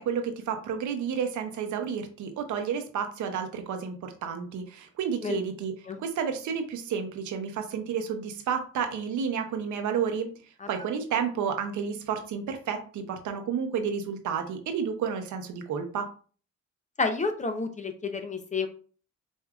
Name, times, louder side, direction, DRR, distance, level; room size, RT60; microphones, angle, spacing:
voice 1, 0.0-5.7 6.0-10.3 10.7-16.1, right 7 dB, 75° right, 6 dB, 0.8 m, -31 dB
voice 2, 17.0-18.7, left 4 dB, 25° left, 7 dB, 0.6 m, -30 dB
5.0 x 2.7 x 2.3 m, 0.40 s
cardioid pair, 90°, 30 cm